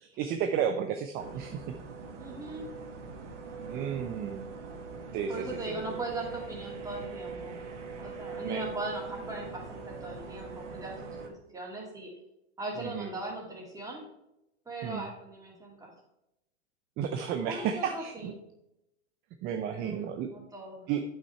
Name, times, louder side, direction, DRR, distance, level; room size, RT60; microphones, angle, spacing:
voice 1, 0.0-1.6 3.7-4.5 5.1-5.9 8.5-8.6 12.8-13.1 14.8-15.1 17.0-18.3 19.4-20.3 20.9-21.0, right 8 dB, 25° right, 6 dB, 0.5 m, -33 dB
sound 1, 1.2-11.3, right 4 dB, 75° right, 1.6 m, -42 dB
voice 2, 2.2-2.7 5.3-7.6 8.0-12.1 12.6-14.0 14.7-15.9 17.5-18.3 19.7-20.8, right 2 dB, 10° right, -2 dB, 2.5 m, -39 dB
8.4 x 5.7 x 4.4 m, 0.85 s
hypercardioid pair, 125°, 36 cm